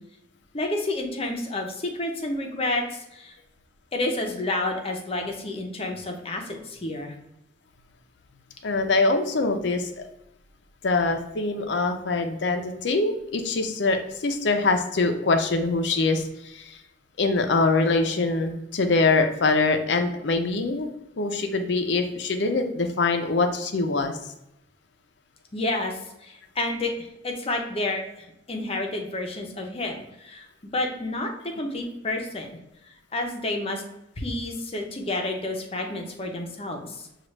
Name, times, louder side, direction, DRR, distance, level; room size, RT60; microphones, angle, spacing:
voice 1, 0.5-3.4 3.9-7.1 25.5-32.6 33.1-33.8 34.2-37.1, left 2 dB, 30° left, 2 dB, 0.7 m, -30 dB
voice 2, 8.6-9.9 10.8-16.8 17.2-20.9 21.2-24.1, left 3 dB, 65° left, 6 dB, 0.6 m, -24 dB
6.0 x 2.4 x 3.1 m, 0.86 s
head